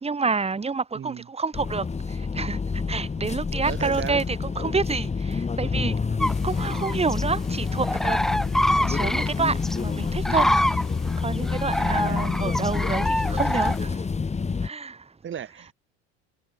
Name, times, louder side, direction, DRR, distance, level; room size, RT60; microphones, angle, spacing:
voice 1, 0.0-1.8 2.3-2.6 2.9-5.9 6.4-8.4 8.7-10.5 11.2-14.0 14.6-15.0, right 4 dB, 20° right, 3.1 m, -28 dB
voice 2, 0.9-1.3 3.7-4.3 11.8-12.4 15.2-15.7, right 9 dB, 40° right, 7.0 m, -35 dB
sound 1, 1.5-14.7, left 5 dB, 20° left, 3.2 m, -28 dB
sound 2, 6.2-13.8, left 1 dB, ahead, 0.6 m, -26 dB
hypercardioid pair, 90°, 32 cm